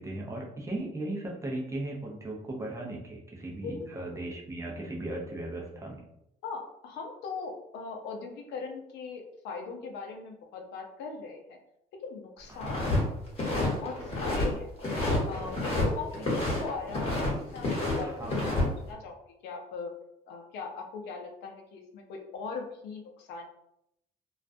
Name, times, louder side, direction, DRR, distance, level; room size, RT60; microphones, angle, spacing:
voice 1, 0.0-6.0 12.5-12.8 16.2-16.3 18.0-18.4, right 1 dB, 20° right, -1 dB, 0.6 m, -37 dB
voice 2, 6.4-11.6 12.0-12.9 13.4-14.7 15.3-18.5 18.9-19.2 19.4-19.9 20.3-23.5, left 4 dB, 80° left, 2 dB, 0.5 m, -40 dB
sound 1, 12.6-13.0 13.3-14.5 14.8-15.9 16.1-17.3 17.6-18.6, left 2 dB, 35° left, 1.1 m, -29 dB
2.4 x 2.1 x 2.5 m, 0.78 s
cardioid pair, 110°, 17 cm